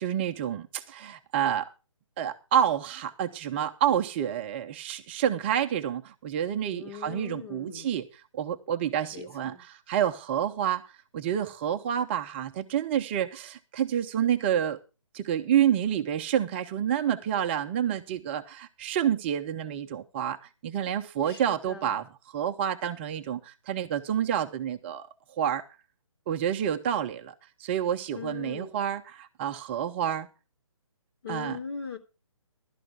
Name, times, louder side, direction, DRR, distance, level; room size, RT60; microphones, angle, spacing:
voice 1, 0.0-1.7 2.2-14.8 15.1-25.1 25.4-25.6 26.3-27.3 27.6-30.3 31.3-31.6, right 9 dB, 20° right, 0.7 m, -29 dB
voice 2, 6.7-7.9 9.1-9.6 21.3-22.0 28.1-28.8 31.2-32.0, left 5 dB, 50° left, 3.5 m, -40 dB
15.5 x 12.5 x 3.6 m
figure-of-eight pair, 140°, 17 cm